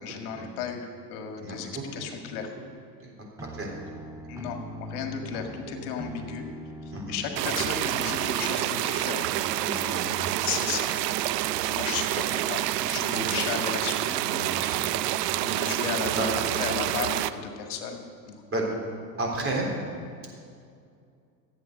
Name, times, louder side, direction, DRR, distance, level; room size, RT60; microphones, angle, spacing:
voice 1, 0.0-2.5 4.3-6.5 6.8-9.2 10.4-10.9 11.7-14.2 15.4-18.4, left 7 dB, 65° left, 4 dB, 1.9 m, -34 dB
voice 2, 1.4-2.1 3.0-3.1 3.5-3.7 6.9-7.2 9.3-10.4 13.1-13.4 14.2-14.9 16.1-16.3 18.5-18.7 19.2-19.7, right 2 dB, 25° right, -1 dB, 3.7 m, -33 dB
sound 1, 3.4-8.5, right 1 dB, 5° right, 0.9 m, -41 dB
sound 2, 7.4-17.3, right 14 dB, 75° right, 0.7 m, -28 dB
15.0 x 8.5 x 6.6 m, 2.3 s
hypercardioid pair, 100°, 48 cm